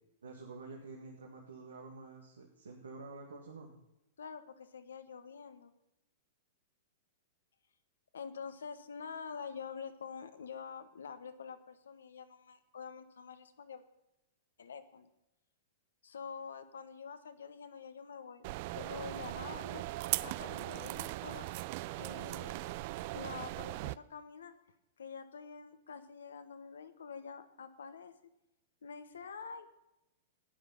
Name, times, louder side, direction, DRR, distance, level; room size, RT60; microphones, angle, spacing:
voice 1, 0.2-3.7, right 3 dB, 85° right, 1 dB, 1.9 m, -49 dB
voice 2, 4.2-5.7 8.1-13.8 14.6-15.1 16.0-19.9 20.2-21.5 22.0-22.7 23.1-24.5 25.0-28.1 28.8-29.7, left 6 dB, 80° left, 10 dB, 1.2 m, -47 dB
sound 1, 18.4-23.9, right 18 dB, 50° right, 0.4 m, -39 dB
12.5 x 9.7 x 5.7 m, 0.91 s
hypercardioid pair, 115°, 0 cm